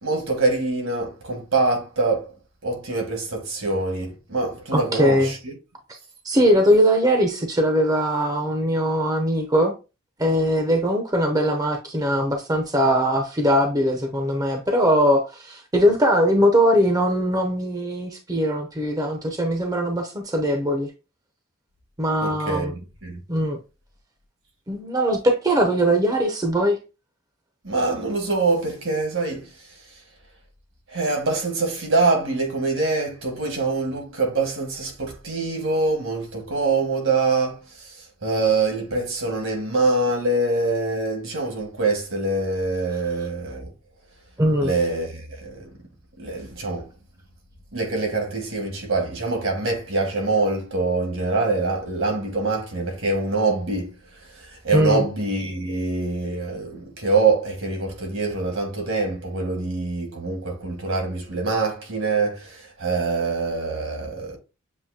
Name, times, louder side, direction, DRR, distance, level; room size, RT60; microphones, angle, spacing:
voice 1, 0.0-2.3 2.6-5.5 22.2-23.2 27.6-29.5 30.9-43.7 44.6-45.7 46.2-46.9 47.7-53.9 54.3-64.4, right 3 dB, 70° right, 1.7 m, -24 dB
voice 2, 4.7-5.3 6.2-9.7 10.2-20.9 22.0-22.7 23.3-23.6 24.7-26.8 44.4-44.7 54.7-55.0, equal, 20° right, 0.6 m, -21 dB
7.2 x 2.7 x 2.7 m
head